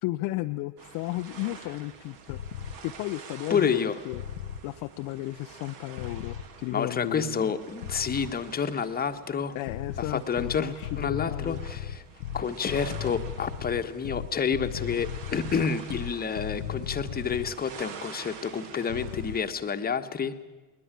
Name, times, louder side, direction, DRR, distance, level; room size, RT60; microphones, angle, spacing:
voice 1, 0.0-2.4 2.8-4.2 4.6-7.5 9.5-11.6, left 18 dB, 45° left, 8 dB, 0.7 m, -34 dB
sound 1, 0.8-19.5, right 6 dB, 50° right, 2.4 m, -47 dB
sound 2, 2.3-2.8 4.1-4.6 6.0-6.5 7.8-8.3 9.7-17.6 18.9-19.4, left 10 dB, 70° left, 0.9 m, -36 dB
voice 2, 3.5-3.9 6.7-9.6 10.0-12.0 12.3-20.4, left 6 dB, 20° left, 8 dB, 1.3 m, -29 dB
20.5 x 20.0 x 8.9 m, 1.2 s
figure-of-eight pair, 65°, 44 cm